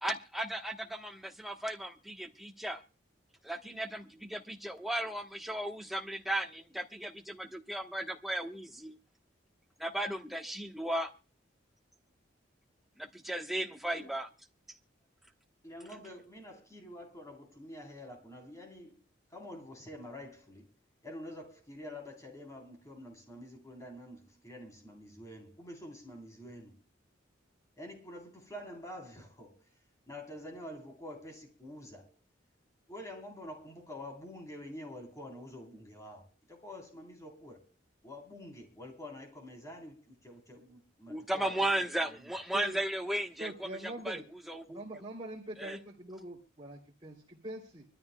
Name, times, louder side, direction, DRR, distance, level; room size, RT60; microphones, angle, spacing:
voice 1, 0.0-2.8 3.4-9.0 9.8-11.1 13.0-14.3 41.1-44.2 44.5-44.8 45.6-45.8, right 1 dB, ahead, 1.1 m, -35 dB
voice 2, 15.6-20.7 21.0-26.8 27.8-29.7 30.1-32.2 32.9-37.7 38.0-41.8 42.1-42.3, left 1 dB, 15° left, 3.6 m, -47 dB
voice 3, 43.4-44.2 44.7-47.8, right 1 dB, 25° right, 2.8 m, -43 dB
25.0 x 13.0 x 2.3 m
head